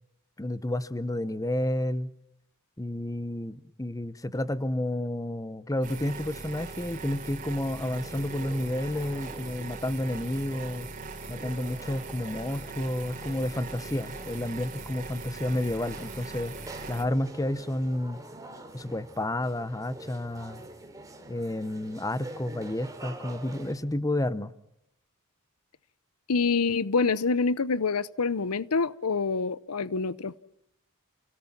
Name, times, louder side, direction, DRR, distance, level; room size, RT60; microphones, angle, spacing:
voice 1, 0.4-2.1 2.8-10.9 11.3-16.5 16.9-18.2 18.7-20.6 21.3-24.5, left 1 dB, 15° left, 0.9 m, -31 dB
sound 1, 5.8-17.0, right 3 dB, 40° right, 3.5 m, -41 dB
sound 2, 8.0-23.7, right 1 dB, 15° right, 3.1 m, -46 dB
voice 2, 26.3-30.3, left 4 dB, 90° left, 0.8 m, -26 dB
29.5 x 17.5 x 7.3 m
head